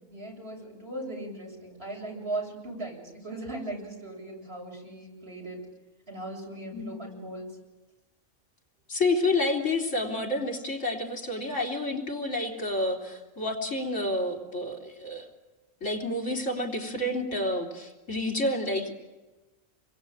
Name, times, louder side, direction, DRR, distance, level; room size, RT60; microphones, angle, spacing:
voice 1, 0.1-5.6 6.1-7.5, right 2 dB, 50° right, 0 dB, 8.1 m, -38 dB
voice 2, 8.9-15.3 15.8-18.9, left 2 dB, 65° left, 0 dB, 4.1 m, -29 dB
29.0 x 23.0 x 8.8 m, 1.1 s
omnidirectional pair, 1.4 m